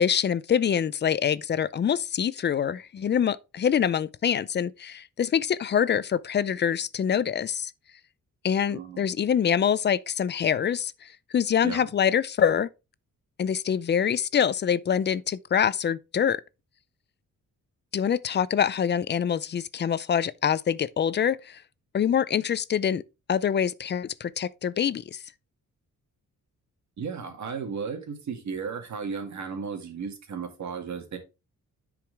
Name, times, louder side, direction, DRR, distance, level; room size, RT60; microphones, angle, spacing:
voice 1, 0.0-7.7 8.4-12.7 13.4-16.4 17.9-21.6 21.9-23.0 23.3-25.2, left 8 dB, 35° left, 0.4 m, -25 dB
voice 2, 8.7-9.1 11.6-11.9 27.0-31.2, right 6 dB, 60° right, 2.2 m, -34 dB
10.0 x 4.9 x 3.4 m
wide cardioid pair, 145°, 32 cm